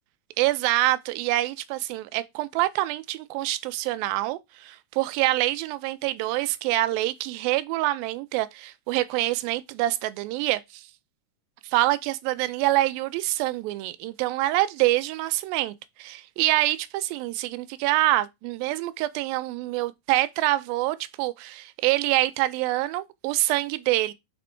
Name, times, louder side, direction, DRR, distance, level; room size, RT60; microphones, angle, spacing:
voice 1, 0.4-10.9 11.6-24.1, right 17 dB, 90° right, 2.3 m, -26 dB
5.1 x 4.2 x 4.4 m
omnidirectional pair, 4.0 m